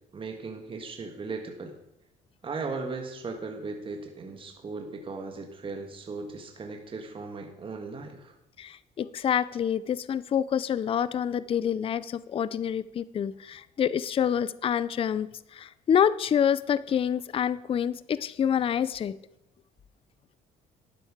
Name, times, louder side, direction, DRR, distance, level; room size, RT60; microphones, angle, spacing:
voice 1, 0.1-1.7 2.4-8.3, right 4 dB, 30° right, 3 dB, 1.6 m, -37 dB
voice 2, 8.6-15.3 15.6-19.1, left 8 dB, 35° left, 17 dB, 0.4 m, -27 dB
12.0 x 9.2 x 4.9 m, 0.89 s
cardioid pair, 110°, 17 cm